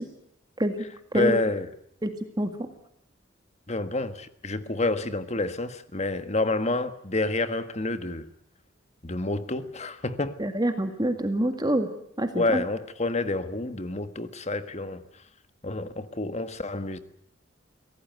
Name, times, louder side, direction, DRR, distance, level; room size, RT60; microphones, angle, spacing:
voice 1, 1.1-1.7 3.7-8.3 9.0-10.4 12.3-15.0 15.6-17.0, left 2 dB, 35° left, 1.5 m, -28 dB
voice 2, 2.4-2.7 10.4-11.9 12.2-12.6, right 1 dB, 20° right, 2.0 m, -26 dB
24.0 x 17.5 x 9.3 m
head